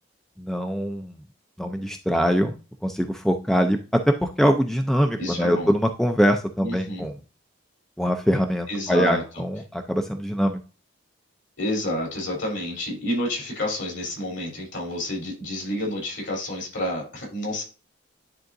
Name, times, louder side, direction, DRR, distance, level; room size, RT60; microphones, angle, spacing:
voice 1, 0.4-1.2 1.6-2.5 2.8-7.1 8.0-10.6, equal, ahead, 5 dB, 0.4 m, -23 dB
voice 2, 5.2-5.7 6.6-7.1 8.7-9.4 11.6-17.6, left 1 dB, 65° left, -1 dB, 3.3 m, -29 dB
10.5 x 3.7 x 2.5 m, 0.33 s
head